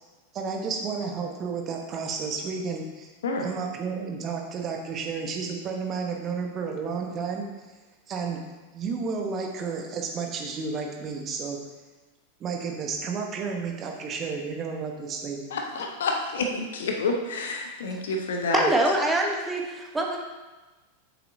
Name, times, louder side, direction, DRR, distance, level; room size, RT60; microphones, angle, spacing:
voice 1, 0.3-3.1 3.4-7.5 8.1-8.4 8.7-11.6 12.4-15.6, right 5 dB, 30° right, 2 dB, 1.2 m, -32 dB
voice 2, 15.5-18.7, left 3 dB, 60° left, 3 dB, 1.0 m, -28 dB
voice 3, 18.5-20.2, right 1 dB, 10° right, 0 dB, 1.2 m, -24 dB
8.7 x 7.4 x 2.8 m, 1.2 s
figure-of-eight pair, 90°, 0 cm